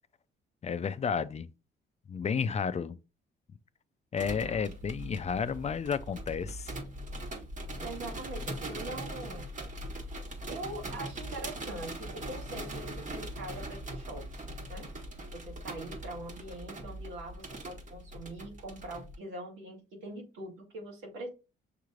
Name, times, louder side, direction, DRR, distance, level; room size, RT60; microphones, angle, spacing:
voice 1, 0.6-1.5 2.1-3.0 4.1-6.7, left 6 dB, 35° left, 0.4 m, -32 dB
sound 1, 4.2-19.1, right 1 dB, 40° right, 1.3 m, -41 dB
voice 2, 7.8-9.5 10.5-14.2 14.7-14.9 15.3-21.3, right 1 dB, 90° right, 2.0 m, -43 dB
6.6 x 3.1 x 2.4 m
cardioid pair, 90°, 20 cm